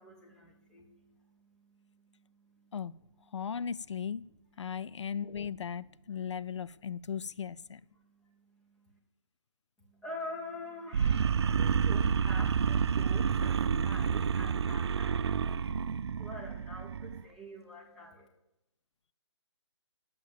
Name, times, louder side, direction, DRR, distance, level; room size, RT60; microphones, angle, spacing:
voice 1, 0.0-2.7 7.9-9.0 9.8-18.3, left 1 dB, 5° left, 1 dB, 1.1 m, -47 dB
voice 2, 3.3-4.2 4.6-7.8, left 7 dB, 70° left, 19 dB, 0.4 m, -37 dB
sound 1, 10.9-17.2, right 7 dB, 60° right, 0.4 m, -29 dB
10.5 x 7.7 x 7.3 m, 0.90 s
hypercardioid pair, 165°, 16 cm